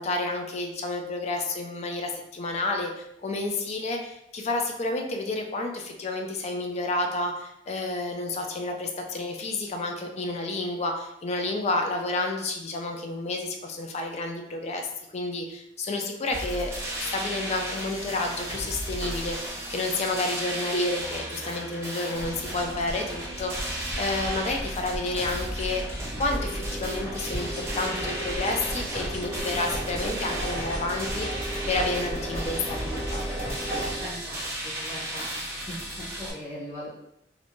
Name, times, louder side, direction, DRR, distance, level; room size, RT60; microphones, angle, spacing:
voice 1, 0.0-14.9 15.1-16.7 17.0-33.2, left 2 dB, 35° left, 3 dB, 0.4 m, -30 dB
sound 1, 16.3-36.3, right 1 dB, 15° right, 0.6 m, -35 dB
sound 2, 19.0-22.3 23.6-23.7, right 3 dB, 80° right, 0.5 m, -46 dB
sound 3, 22.1-34.0, right 1 dB, 60° left, 1.3 m, -35 dB
voice 2, 34.0-35.3 35.7-36.9, equal, 15° left, -12 dB, 0.9 m, -39 dB
2.6 x 2.1 x 2.9 m, 0.78 s
head